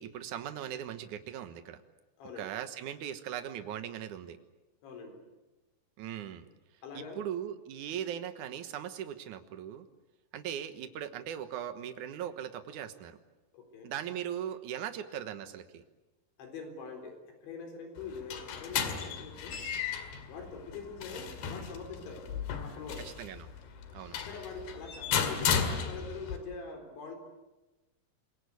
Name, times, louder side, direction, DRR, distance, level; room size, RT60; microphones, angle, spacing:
voice 1, 0.0-1.8 2.4-4.4 6.0-6.5 6.9-9.9 10.3-13.2 13.8-15.8 23.0-23.5 23.9-24.2, right 10 dB, 65° right, 9 dB, 2.1 m, -39 dB
voice 2, 2.2-2.5 4.8-5.2 6.8-7.2 13.5-13.9 16.4-19.6 20.3-22.3 22.6-23.1 24.1-27.2, left 4 dB, 90° left, 4 dB, 6.2 m, -44 dB
sound 1, 18.0-26.4, left 7 dB, 65° left, 3.9 m, -35 dB
26.5 x 22.5 x 8.3 m, 1.1 s
omnidirectional pair, 5.1 m